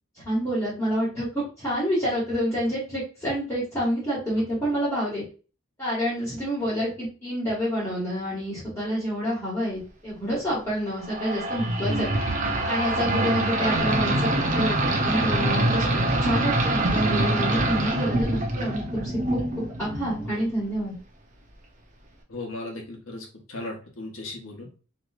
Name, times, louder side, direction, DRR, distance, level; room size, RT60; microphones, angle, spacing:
voice 1, 0.2-5.2 5.8-12.1 12.7-14.3 14.5-20.9, equal, 15° left, -8 dB, 1.6 m, -28 dB
sound 1, 11.1-20.4, right 1 dB, 40° right, 0.6 m, -25 dB
voice 2, 22.3-24.7, left 2 dB, 80° left, 2 dB, 1.0 m, -37 dB
3.0 x 3.0 x 2.4 m, 0.35 s
head